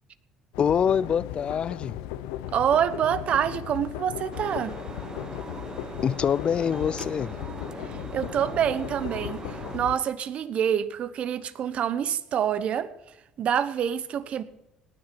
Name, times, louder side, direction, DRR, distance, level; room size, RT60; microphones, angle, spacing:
sound 1, 0.5-10.0, left 13 dB, 90° left, 0.7 m, -37 dB
voice 1, 0.6-2.0 6.0-7.3, left 8 dB, 45° left, 0.4 m, -25 dB
voice 2, 2.5-4.8 7.8-12.9 13.4-14.4, right 9 dB, 55° right, 1.1 m, -26 dB
sound 2, 4.3-9.8, right 4 dB, 30° right, 1.0 m, -40 dB
18.5 x 9.8 x 6.1 m
supercardioid pair, 75°, 2 cm